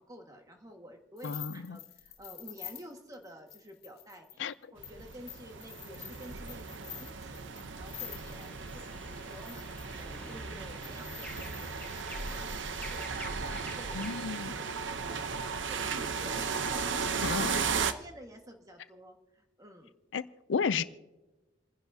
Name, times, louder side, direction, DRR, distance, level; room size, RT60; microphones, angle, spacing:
voice 1, 0.0-7.5 7.8-17.4 17.6-19.9, equal, 20° right, 1.6 m, -50 dB
voice 2, 1.2-1.8 4.4-4.5 13.9-14.5 17.2-17.6 20.1-20.8, left 5 dB, 70° left, 0.5 m, -32 dB
sound 1, 1.2-8.7 9.3-10.2 10.8-13.1, left 12 dB, 55° left, 2.1 m, -48 dB
sound 2, 4.8-17.9, right 5 dB, 70° right, 0.8 m, -36 dB
sound 3, 7.9-14.2, left 1 dB, 10° left, 1.0 m, -46 dB
29.0 x 10.5 x 2.8 m
head